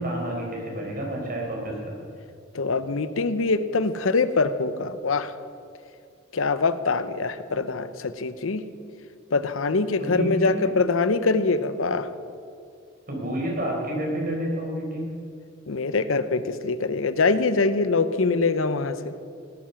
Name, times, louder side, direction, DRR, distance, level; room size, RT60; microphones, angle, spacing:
voice 1, 0.0-1.9 10.0-10.8 13.1-15.1, right 1 dB, 45° right, -1 dB, 4.5 m, -29 dB
voice 2, 2.5-5.3 6.3-8.6 9.3-12.1 15.7-19.1, left 3 dB, 85° left, 13 dB, 0.8 m, -24 dB
17.5 x 12.5 x 5.8 m, 2.4 s
head